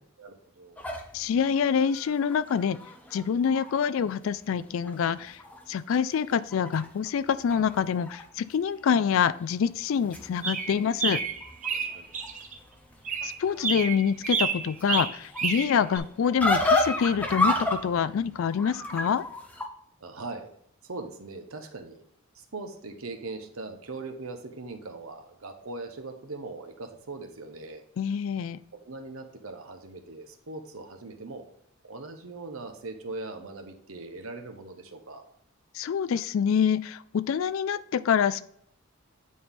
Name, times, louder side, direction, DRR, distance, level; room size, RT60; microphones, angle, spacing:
voice 1, 0.2-0.9 11.8-12.1 20.0-20.5 20.8-22.0 22.3-27.8 28.7-31.4 31.8-35.2, right 3 dB, 75° right, 6 dB, 1.1 m, -40 dB
sound 1, 0.8-4.0 4.5-4.6 4.9-5.6 5.9-8.2 8.5-9.0 9.7-19.7, left 2 dB, 5° left, 0.8 m, -32 dB
voice 2, 1.1-2.8 3.1-5.4 5.7-11.2 13.2-19.2 28.0-28.6 35.7-38.4, left 7 dB, 65° left, 15 dB, 0.3 m, -26 dB
sound 2, 10.4-12.6 13.0-16.0, right 6 dB, 35° right, 0.8 m, -30 dB
9.3 x 4.2 x 3.6 m, 0.69 s
head